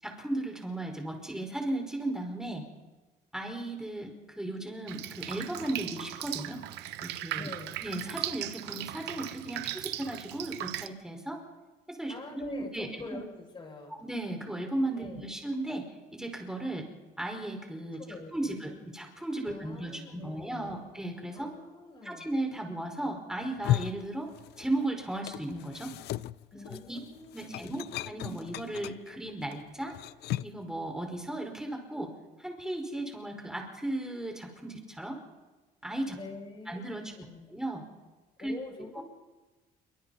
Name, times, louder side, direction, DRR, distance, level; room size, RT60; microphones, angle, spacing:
voice 1, 0.0-2.6 3.3-6.6 7.0-7.5 7.8-11.4 11.9-13.2 14.0-16.9 17.2-18.0 18.3-21.5 22.0-24.3 24.6-25.9 26.6-27.0 27.3-30.0 30.4-32.1 32.4-35.2 35.8-36.2 36.7-37.0 37.5-37.8 38.4-38.5 39.0-39.1, right 1 dB, 5° right, 2 dB, 5.3 m, -36 dB
Drip, 4.9-10.9, right 14 dB, 85° right, 1.0 m, -38 dB
voice 2, 7.4-7.8 12.1-13.9 14.9-15.3 17.9-18.8 19.4-20.9 21.3-22.3 26.5-27.9 36.1-37.6 38.4-39.0, left 3 dB, 30° left, 1 dB, 7.2 m, -46 dB
sound 1, 23.4-24.8 25.1-30.6, left 14 dB, 75° left, 0.6 m, -36 dB
27.5 x 24.5 x 4.3 m, 1.2 s
cardioid pair, 110°, 17 cm